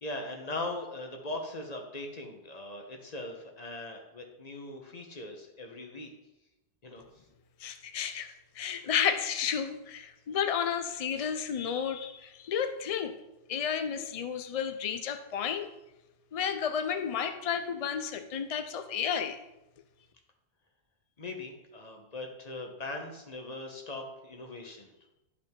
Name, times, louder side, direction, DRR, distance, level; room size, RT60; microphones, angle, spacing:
voice 1, 0.0-6.1 6.8-7.1 21.2-24.9, left 2 dB, 35° left, 3 dB, 1.2 m, -40 dB
voice 2, 7.6-13.2 13.5-15.7 16.3-19.4, left 8 dB, 60° left, 8 dB, 0.3 m, -32 dB
11.5 x 5.1 x 3.7 m, 0.94 s
omnidirectional pair, 1.2 m